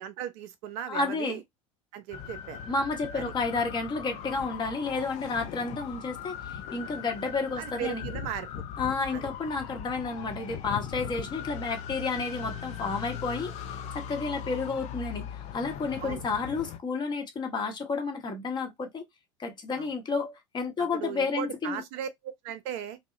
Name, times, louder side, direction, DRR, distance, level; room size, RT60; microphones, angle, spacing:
voice 1, 0.0-1.4 1.9-2.6 3.1-3.3 7.6-8.5 9.1-9.2 16.0-16.2 19.8-19.9 20.8-23.0, right 10 dB, 50° right, 0.4 m, -37 dB
voice 2, 0.9-1.4 2.7-8.0 8.8-19.0 19.4-21.8, left 4 dB, 25° left, 0.8 m, -31 dB
siren in nyc, 2.1-16.8, left 8 dB, 40° left, 0.5 m, -39 dB
2.7 x 2.0 x 2.4 m
figure-of-eight pair, 75°, 17 cm